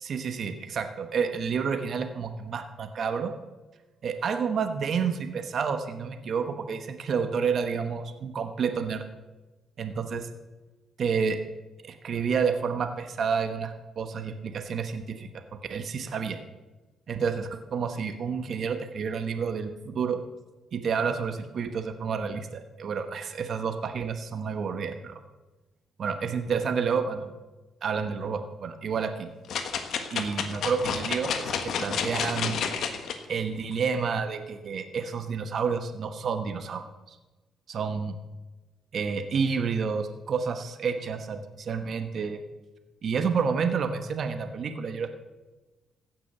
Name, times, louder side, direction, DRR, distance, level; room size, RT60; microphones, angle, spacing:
voice 1, 0.0-3.3 4.0-9.1 9.8-10.3 11.0-11.4 11.8-15.3 15.7-16.4 17.1-20.2 20.7-25.2 26.0-27.3 27.8-29.3 30.1-31.5 31.8-32.6 33.3-36.8 37.7-38.1 38.9-42.4 43.0-45.1, right 6 dB, 55° right, 7 dB, 1.1 m, -29 dB
sound 1, 29.5-33.2 33.7-33.8, left 6 dB, 70° left, 1.3 m, -30 dB
15.5 x 6.1 x 6.7 m, 1.2 s
cardioid pair, 90°, 0 cm